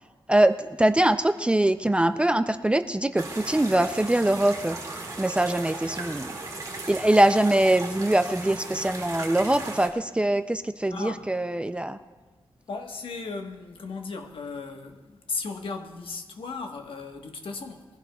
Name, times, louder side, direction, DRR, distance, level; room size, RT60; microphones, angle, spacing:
voice 1, 0.3-4.8 5.2-6.3 6.9-12.0, right 1 dB, 10° right, 0.4 m, -23 dB
sound 1, 3.2-9.9, right 2 dB, 40° right, 2.1 m, -37 dB
voice 2, 10.9-11.3 12.7-17.9, left 4 dB, 70° left, 1.2 m, -36 dB
22.0 x 15.5 x 2.3 m
wide cardioid pair, 170°, 9 cm